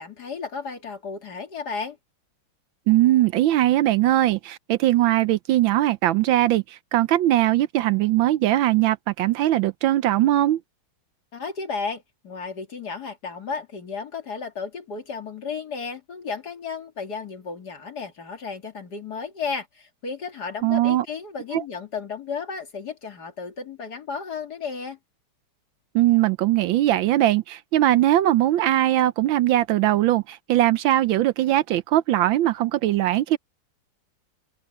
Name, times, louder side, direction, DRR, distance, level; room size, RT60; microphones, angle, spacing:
voice 1, 0.0-2.0 11.3-25.0, left 5 dB, 50° left, 2.8 m, -33 dB
voice 2, 2.9-10.6 20.6-21.0 21.5-21.6 25.9-33.4, right 14 dB, 75° right, 1.3 m, -20 dB
open air
omnidirectional pair, 2.3 m